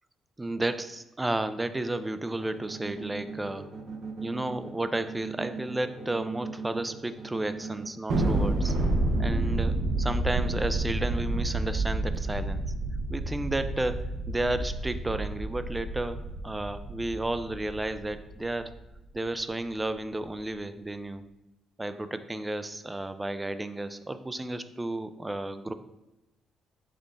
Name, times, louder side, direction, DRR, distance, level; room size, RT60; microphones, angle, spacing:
voice 1, 0.4-3.7 4.2-8.7 9.2-12.6 13.1-18.7 19.1-21.2 21.8-25.7, right 2 dB, 15° right, 11 dB, 0.3 m, -32 dB
sound 1, 2.4-7.9, right 4 dB, 35° right, 0.8 m, -40 dB
Thunder, 8.1-18.7, right 2 dB, 70° right, 0.7 m, -29 dB
5.5 x 2.4 x 3.8 m, 0.95 s
cardioid pair, 90°, 0 cm